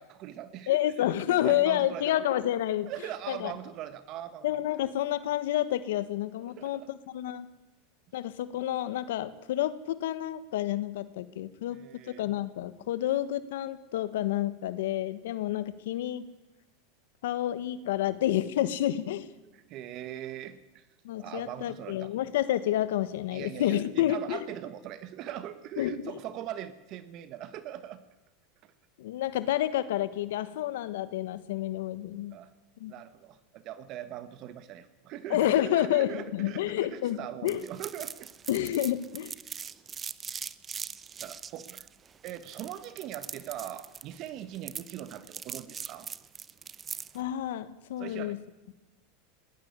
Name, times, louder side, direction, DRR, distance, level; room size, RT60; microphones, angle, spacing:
voice 1, 0.0-0.8 1.3-2.1 2.9-4.8 6.4-6.9 11.7-12.2 19.5-20.9 21.2-22.1 23.3-28.0 28.6-28.7 32.3-32.5 32.9-38.3 41.2-41.9 42.2-46.1 48.0-48.4, right 11 dB, 45° right, 13 dB, 1.3 m, -41 dB
voice 2, 0.7-2.9 3.3-3.5 4.4-7.5 8.1-11.8 12.1-16.2 17.2-19.3 21.0-24.5 25.8-26.0 29.0-32.4 32.8-32.9 35.3-37.6 38.5-39.3 47.1-48.4, left 13 dB, 80° left, 14 dB, 1.3 m, -29 dB
sound 1, 37.5-47.2, right 7 dB, 25° right, 0.8 m, -41 dB
20.0 x 18.5 x 9.7 m, 1.0 s
supercardioid pair, 125°, 0 cm